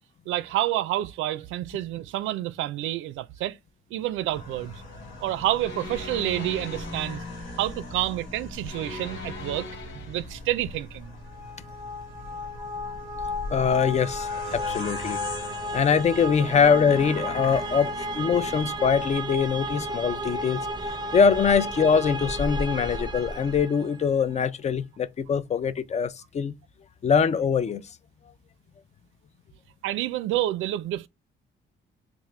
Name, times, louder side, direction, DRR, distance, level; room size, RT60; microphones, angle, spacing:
voice 1, 0.3-3.6 3.9-4.8 5.2-7.2 7.6-9.7 9.9-11.1 29.8-31.1, right 14 dB, 85° right, 0.4 m, -28 dB
sound 1, 4.3-23.6, left 1 dB, 80° left, 1.6 m, -40 dB
sound 2, 5.6-7.3 8.7-10.4, left 2 dB, 65° left, 1.2 m, -40 dB
sound 3, 11.3-24.1, equal, 20° right, 0.6 m, -33 dB
voice 2, 13.5-15.2 15.7-26.5 27.0-27.8, left 6 dB, 35° left, 0.4 m, -23 dB
3.6 x 2.5 x 3.1 m
cardioid pair, 90°, 20 cm